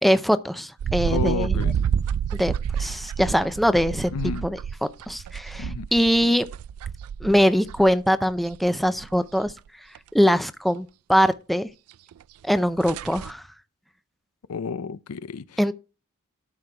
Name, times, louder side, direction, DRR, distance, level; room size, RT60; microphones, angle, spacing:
voice 1, 0.0-1.6 2.3-2.5 2.8-4.1 4.4-4.6 5.1-6.5 7.2-9.5 10.1-11.7 12.4-13.4 15.6-15.7, equal, ahead, 0.5 m, -22 dB
sound 1, 0.8-7.9 8.3-9.2 9.5-9.6 10.0-10.1 12.1-12.2 12.5-12.6 12.8-13.3, right 8 dB, 75° right, 0.3 m, -29 dB
voice 2, 1.1-1.8 4.1-4.5 5.6-5.9 14.5-15.7, left 5 dB, 80° left, 0.5 m, -31 dB
12.5 x 6.2 x 3.4 m
head